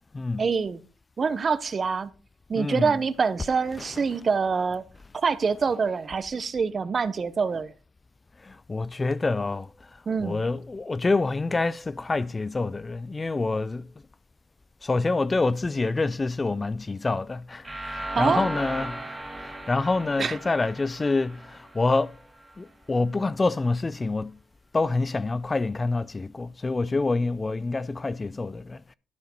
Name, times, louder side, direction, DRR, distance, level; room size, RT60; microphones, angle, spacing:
voice 1, 0.4-0.8 1.2-2.1 2.5-4.8 5.1-7.7 10.1-10.4 18.2-18.5 20.2-20.4, right 5 dB, 40° right, 0.7 m, -25 dB
voice 2, 2.6-2.9 8.5-9.7 10.2-13.9 14.8-22.1 22.6-24.3 24.7-28.8, left 3 dB, 25° left, 0.3 m, -27 dB
sound 1, 17.6-22.5, right 1 dB, 10° right, 2.0 m, -36 dB
11.5 x 5.1 x 4.4 m
cardioid pair, 90°, 0 cm